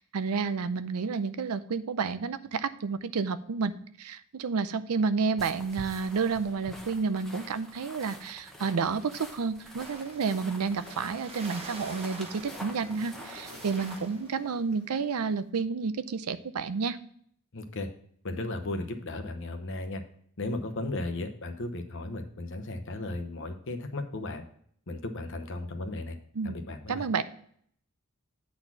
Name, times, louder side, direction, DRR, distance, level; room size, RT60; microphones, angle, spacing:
voice 1, 0.0-17.0 26.3-26.6 26.9-27.2, right 5 dB, 85° right, 13 dB, 0.5 m, -30 dB
sound 1, 5.4-14.0, equal, ahead, 0.9 m, -46 dB
sound 2, 9.8-14.6, right 3 dB, 25° right, 1.0 m, -47 dB
sound 3, 10.5-15.2, left 1 dB, 85° left, 1.8 m, -54 dB
voice 2, 17.5-17.9 18.2-20.0 20.4-24.4 24.9-26.2 26.4-27.0, left 2 dB, 55° left, 7 dB, 0.9 m, -35 dB
8.7 x 4.2 x 5.9 m, 0.62 s
head